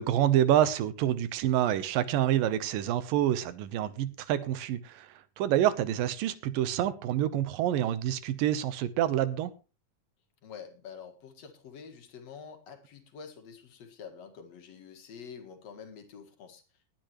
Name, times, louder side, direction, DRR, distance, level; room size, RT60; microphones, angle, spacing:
voice 1, 0.0-5.1 5.4-9.5, right 11 dB, 80° right, 14 dB, 2.6 m, -27 dB
voice 2, 10.4-16.6, left 6 dB, 50° left, 5 dB, 2.7 m, -47 dB
19.5 x 10.5 x 3.1 m, 0.31 s
omnidirectional pair, 4.0 m